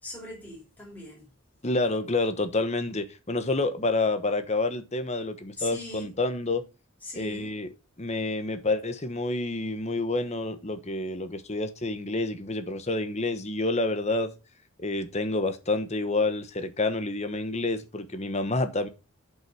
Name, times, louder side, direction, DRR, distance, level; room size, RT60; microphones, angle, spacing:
voice 1, 0.0-1.3 5.6-6.1 7.0-7.5, left 1 dB, 5° left, 4.2 m, -40 dB
voice 2, 1.6-6.6 7.2-7.7 8.0-14.3 14.8-18.9, left 2 dB, 30° left, 1.1 m, -28 dB
7.6 x 5.7 x 6.1 m
head